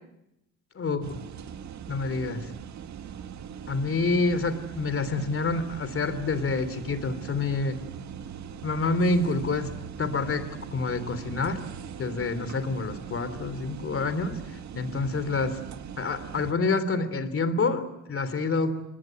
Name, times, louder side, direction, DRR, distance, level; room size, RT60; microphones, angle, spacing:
sound 1, 1.0-16.5, right 8 dB, 70° right, 1.8 m, -41 dB
voice 1, 1.9-2.5 3.7-7.8 8.6-11.6 12.0-14.4 14.7-15.6 16.0-18.8, left 3 dB, 45° left, 12 dB, 3.3 m, -27 dB
26.5 x 20.0 x 9.2 m, 0.84 s
cardioid pair, 90°, 30 cm